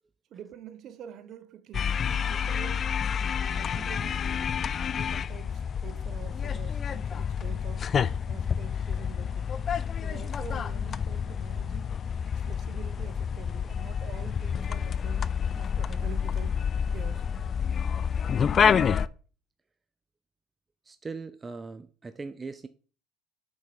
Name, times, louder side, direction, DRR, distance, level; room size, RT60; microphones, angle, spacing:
voice 1, 0.3-3.0 3.5-4.6 4.9-8.0 8.3-9.5 10.0-12.0 12.3-15.3 15.5-16.6 16.9-17.3, right 9 dB, 50° right, 0.9 m, -46 dB
sound 1, 1.7-19.1, left 7 dB, 35° left, 0.4 m, -29 dB
voice 2, 20.8-22.7, right 4 dB, 20° right, 0.5 m, -39 dB
6.4 x 5.5 x 5.2 m
supercardioid pair, 90°, 0 cm